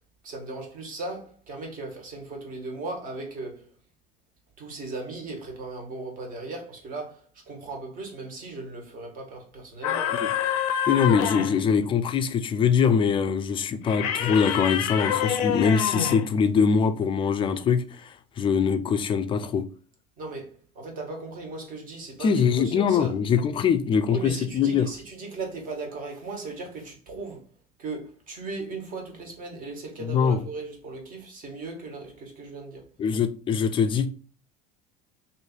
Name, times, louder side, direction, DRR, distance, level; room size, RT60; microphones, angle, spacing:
voice 1, 0.2-3.7 4.6-10.2 20.2-23.1 24.1-27.4 27.8-32.9, right 3 dB, 45° right, 1.5 m, -37 dB
sound 1, 9.8-11.6 13.8-16.3, left 9 dB, 90° left, 0.6 m, -27 dB
voice 2, 10.9-19.6 22.2-24.9 30.0-30.4 33.0-34.1, left 6 dB, 25° left, 0.4 m, -23 dB
3.1 x 2.7 x 4.3 m
supercardioid pair, 120°, 19 cm